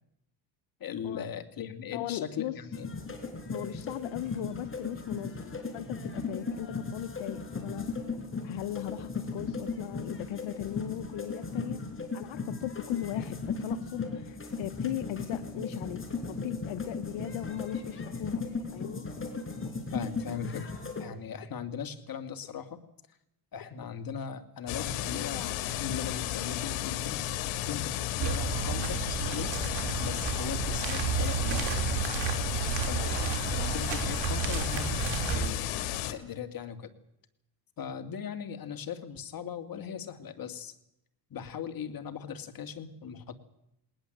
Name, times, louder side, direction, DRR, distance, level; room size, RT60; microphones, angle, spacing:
voice 1, 0.8-2.9 19.9-20.7 21.0-22.8 23.5-27.2 27.7-29.5 30.0-31.9 32.8-35.0 35.2-36.9 37.8-40.7 41.3-43.4, left 7 dB, 45° left, 8 dB, 2.3 m, -39 dB
voice 2, 1.9-2.5 3.5-8.1 8.4-11.8 12.1-18.4 18.7-19.0 33.1-33.2, left 14 dB, 75° left, 12 dB, 1.0 m, -38 dB
sound 1, 2.7-21.1, left 4 dB, 25° left, 4.7 m, -37 dB
sound 2, 24.7-36.1, left 12 dB, 90° left, 1.8 m, -33 dB
sound 3, 28.2-35.5, right 7 dB, 65° right, 3.6 m, -32 dB
20.0 x 19.0 x 7.9 m, 0.81 s
cardioid pair, 95°, 48 cm